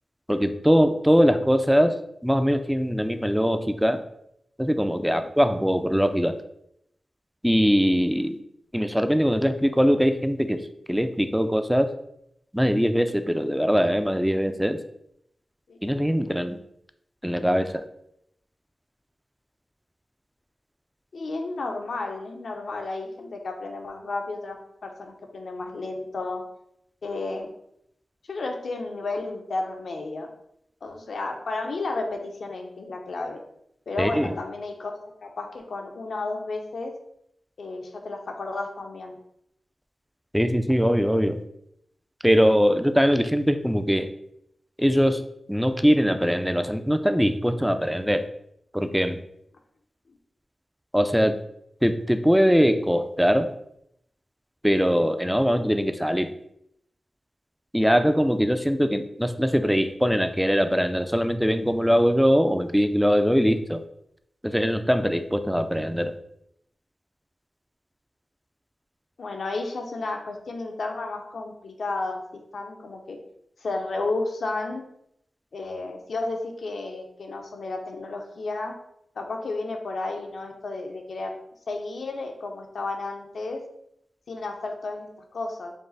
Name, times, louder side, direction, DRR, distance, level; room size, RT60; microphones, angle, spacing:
voice 1, 0.3-4.0 4.6-6.4 7.4-8.4 8.7-10.6 10.9-11.9 12.5-14.8 15.8-16.6 17.2-17.8 34.0-34.3 40.3-41.4 42.2-44.1 44.8-45.2 45.5-48.2 48.7-49.2 50.9-51.4 51.8-53.5 54.6-56.3 57.7-63.8 64.4-66.1, equal, ahead, 9 dB, 0.4 m, -22 dB
voice 2, 21.1-24.6 24.8-26.4 27.0-27.5 28.3-30.3 30.8-33.4 33.9-34.9 35.2-36.9 37.6-39.2 69.2-73.2 73.6-74.8 75.5-78.7 79.1-81.4 81.7-83.6 84.3-85.7, left 3 dB, 80° left, 3 dB, 0.7 m, -32 dB
5.2 x 2.0 x 4.0 m, 0.75 s
cardioid pair, 65°, 0 cm